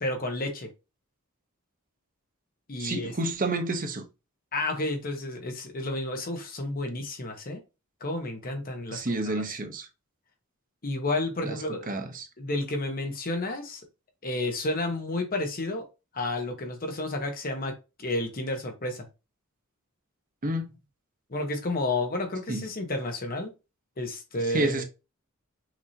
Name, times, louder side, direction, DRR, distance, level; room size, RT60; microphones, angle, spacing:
voice 1, 0.0-0.7 2.7-3.1 4.5-7.6 8.0-9.4 10.8-11.8 12.4-13.8 14.2-15.9 16.1-17.7 18.0-19.1 21.3-23.5 24.0-24.8, left 2 dB, 45° left, 1.0 m, -31 dB
voice 2, 2.8-4.0 8.9-9.9 11.4-11.6 11.9-12.3 20.4-20.7 22.5-22.6 24.5-24.8, right 2 dB, 40° right, 0.9 m, -29 dB
6.0 x 2.8 x 2.8 m
head